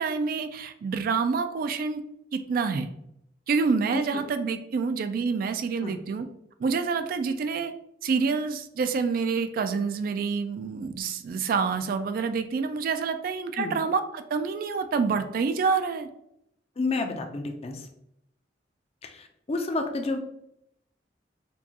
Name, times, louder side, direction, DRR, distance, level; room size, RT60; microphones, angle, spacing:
voice 1, 0.0-2.0 2.3-2.9 3.5-6.3 6.6-7.7 8.0-16.1, right 5 dB, 55° right, 9 dB, 0.3 m, -27 dB
voice 2, 3.9-4.2 5.8-5.9 13.6-13.7 16.8-17.9 19.0-20.2, left 3 dB, 35° left, 5 dB, 0.5 m, -30 dB
4.5 x 2.3 x 2.8 m, 0.78 s
head